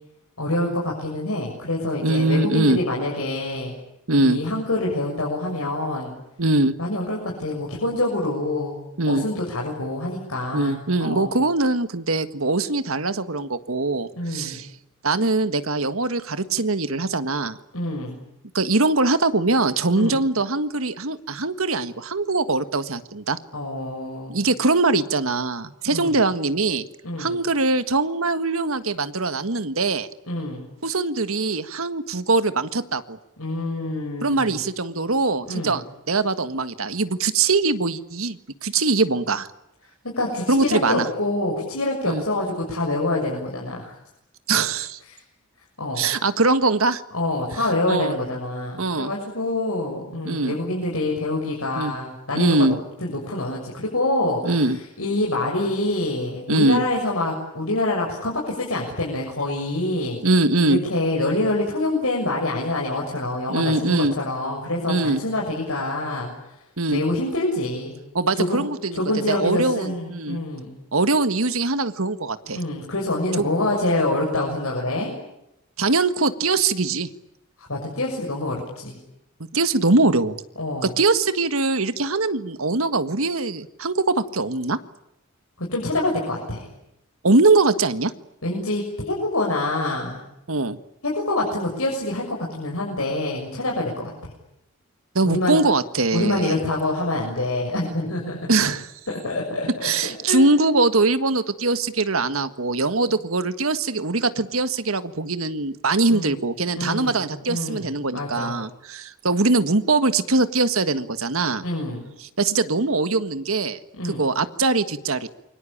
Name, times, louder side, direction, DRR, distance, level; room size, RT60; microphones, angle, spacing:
voice 1, 0.4-3.7 4.2-6.1 6.8-8.8 9.1-11.3 14.2-14.6 17.7-18.2 19.9-20.2 23.5-24.4 25.9-26.1 27.0-27.4 30.3-30.6 33.4-34.6 35.5-35.8 40.0-43.9 45.8-46.0 47.1-52.7 53.0-54.6 55.0-60.2 60.6-66.3 66.9-68.0 68.4-68.6 68.9-70.8 72.5-75.1 77.7-79.0 80.6-80.9 85.6-86.6 88.4-90.2 91.1-94.1 95.2-95.6 96.1-98.5 99.1-100.5 106.1-106.3 106.8-108.6 111.6-112.0 114.0-114.2, left 2 dB, 85° left, -1 dB, 6.7 m, -26 dB
voice 2, 2.0-2.8 4.1-4.4 6.4-6.8 9.0-9.2 10.5-14.7 15.0-17.6 18.5-23.4 24.3-26.9 27.2-30.1 30.8-33.2 34.2-39.5 40.5-41.1 42.0-42.2 44.5-45.0 45.9-47.0 47.6-48.2 48.8-49.1 50.2-50.6 51.8-51.9 52.3-52.8 54.4-54.8 56.5-56.8 60.2-60.8 63.5-64.2 64.9-65.2 66.8-67.0 68.1-70.4 70.9-72.6 73.4-73.5 75.8-77.1 79.5-80.4 80.8-84.8 87.2-88.1 90.5-90.8 95.1-96.6 98.5-98.9 99.8-111.6 112.2-113.8 114.0-115.3, right 3 dB, 80° right, 11 dB, 1.7 m, -22 dB
28.0 x 24.0 x 8.8 m, 0.85 s
head